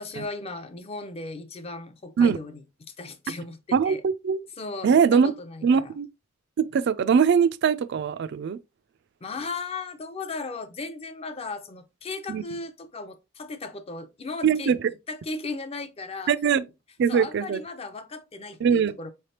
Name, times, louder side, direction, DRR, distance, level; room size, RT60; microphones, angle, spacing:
voice 1, 0.0-2.6 3.0-4.0 4.6-5.9 9.2-14.7 15.1-16.3 17.1-19.1, left 3 dB, 30° left, 0.5 m, -36 dB
voice 2, 3.7-4.4 4.8-5.3 5.6-6.1 6.7-8.6 12.3-12.4 14.4-14.8 16.3-16.6 17.0-17.6 18.6-18.9, right 6 dB, 55° right, 0.3 m, -21 dB
4.9 x 3.3 x 2.8 m
head